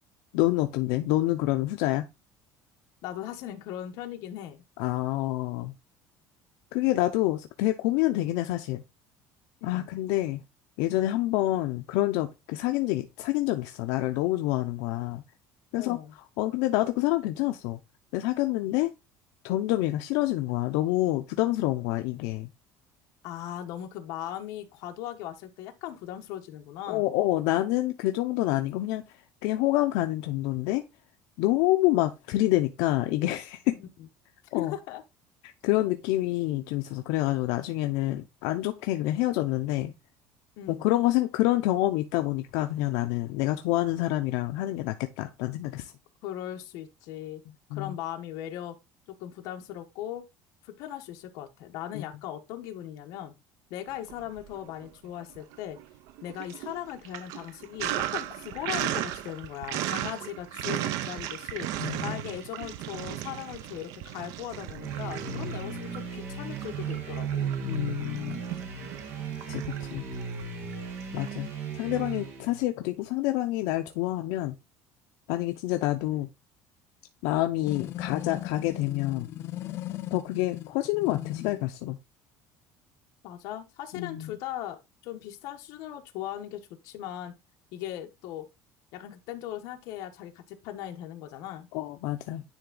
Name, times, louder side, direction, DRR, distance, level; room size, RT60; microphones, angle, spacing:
voice 1, 0.3-2.1 4.8-5.7 6.7-8.8 9.6-10.4 10.8-15.2 15.7-16.0 16.4-17.8 18.1-18.9 19.4-22.5 26.9-29.0 29.4-30.8 31.4-33.8 34.5-34.8 35.6-39.9 40.7-45.9 47.7-47.9 51.9-52.0 61.8-62.2 67.6-68.4 69.5-70.0 71.1-71.5 71.7-74.5 75.3-76.3 77.2-79.3 80.1-82.0 83.9-84.4 91.7-92.4, left 16 dB, 85° left, 0.6 m, -27 dB
voice 2, 3.0-4.6 9.6-9.9 15.8-16.1 23.2-27.1 33.7-33.8 34.5-35.0 40.6-40.9 46.2-47.4 47.7-48.7 49.1-50.2 50.6-53.3 53.7-55.8 56.2-67.5 83.2-87.3 87.7-88.4 88.9-91.7, left 12 dB, 65° left, 1.2 m, -38 dB
Sink (filling or washing), 54.0-54.9 55.2-71.3, right 13 dB, 65° right, 0.7 m, -36 dB
sound 1, 64.8-72.6, right 5 dB, 50° right, 1.8 m, -35 dB
sound 2, 77.7-81.7, left 14 dB, 40° left, 0.5 m, -37 dB
10.0 x 3.4 x 3.9 m
cardioid pair, 175°, 6 cm